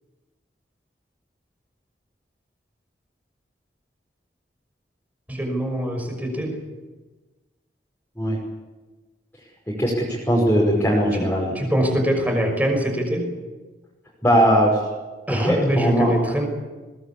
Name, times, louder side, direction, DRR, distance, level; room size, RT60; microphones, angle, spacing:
voice 1, 5.3-6.6 11.1-13.3 15.3-16.4, equal, 10° right, 3 dB, 5.7 m, -23 dB
voice 2, 9.8-11.5 14.2-14.8 15.4-16.2, equal, 15° left, -4 dB, 5.6 m, -19 dB
22.5 x 19.5 x 8.6 m, 1.2 s
head